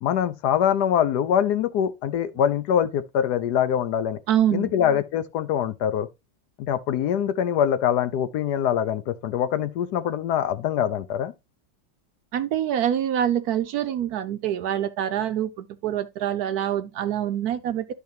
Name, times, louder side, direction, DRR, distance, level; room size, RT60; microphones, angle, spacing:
voice 1, 0.0-4.2 4.5-6.1 6.6-11.3, left 9 dB, 70° left, 1.1 m, -24 dB
voice 2, 4.3-4.7 12.3-17.9, right 10 dB, 70° right, 0.9 m, -25 dB
12.0 x 4.7 x 2.7 m
omnidirectional pair, 2.0 m